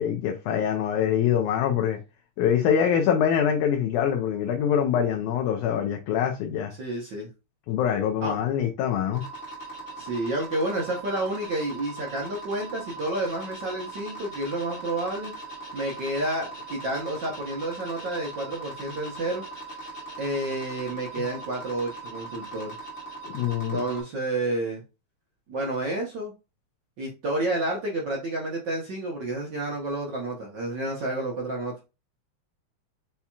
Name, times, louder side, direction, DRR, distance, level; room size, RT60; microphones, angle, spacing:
voice 1, 0.0-2.0 2.4-6.7 7.7-9.2 23.3-23.8, left 8 dB, 85° left, 2.1 m, -24 dB
voice 2, 6.8-7.3 8.2-8.3 10.0-15.3 15.7-19.4 20.2-22.8 23.7-24.8 25.5-26.3 27.0-31.7, right 1 dB, 65° right, 1.1 m, -30 dB
sound 1, 9.1-24.0, right 3 dB, 35° left, 1.4 m, -40 dB
6.8 x 2.9 x 2.3 m
omnidirectional pair, 3.5 m